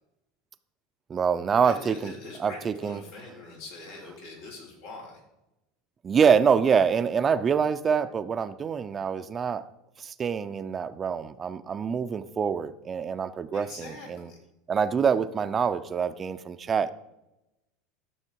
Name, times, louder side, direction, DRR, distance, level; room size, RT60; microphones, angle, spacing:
voice 1, 1.1-2.1 2.4-3.0 6.0-9.6 10.0-14.3 14.7-16.9, right 6 dB, 30° right, 12 dB, 0.6 m, -25 dB
voice 2, 1.6-5.2 13.5-14.4, left 3 dB, 80° left, -2 dB, 4.5 m, -43 dB
13.5 x 6.5 x 4.6 m, 0.93 s
supercardioid pair, 110°, 0 cm